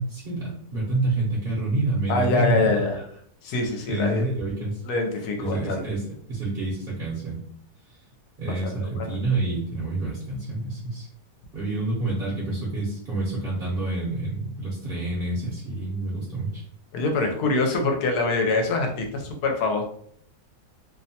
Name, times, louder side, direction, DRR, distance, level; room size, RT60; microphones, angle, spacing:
voice 1, 0.0-3.0 3.9-4.8 5.4-6.0 6.3-7.4 7.9-8.0 8.4-11.1 11.5-16.6, right 2 dB, 50° right, -6 dB, 0.7 m, -28 dB
voice 2, 2.1-3.0 3.4-4.3 4.8-5.8 8.8-9.1 16.9-19.8, left 3 dB, 80° left, 3 dB, 1.2 m, -24 dB
2.8 x 2.1 x 2.7 m, 0.63 s
omnidirectional pair, 1.7 m